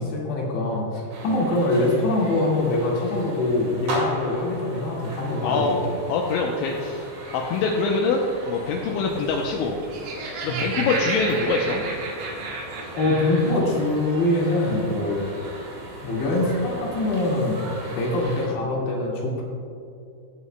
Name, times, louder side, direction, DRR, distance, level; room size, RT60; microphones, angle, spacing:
voice 1, 0.0-6.0 10.5-10.7 13.0-15.3 16.0-17.6 17.9-19.4, left 2 dB, 65° left, -4 dB, 4.0 m, -24 dB
sound 1, 1.1-18.5, right 1 dB, 50° right, 2.8 m, -38 dB
voice 2, 5.4-5.8 6.1-7.1 7.3-9.8 10.4-11.8, left 4 dB, 80° left, 0 dB, 2.8 m, -24 dB
Laughter, 9.7-13.5, right 3 dB, 85° right, 4.4 m, -32 dB
16.5 x 9.5 x 2.2 m, 2.7 s
omnidirectional pair, 5.8 m